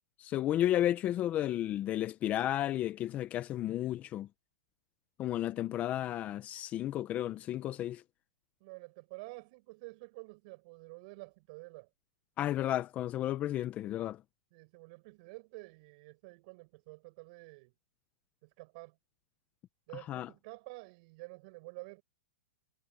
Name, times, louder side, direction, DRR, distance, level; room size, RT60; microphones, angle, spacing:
voice 1, 0.2-4.3 5.2-8.0 12.4-14.2 20.1-20.3, left 12 dB, 25° left, 1.0 m, -32 dB
voice 2, 5.5-6.1 8.6-11.9 14.5-17.7 18.4-19.0 19.9-22.0, right 27 dB, 40° right, 7.8 m, -50 dB
hypercardioid pair, 150°, 6 cm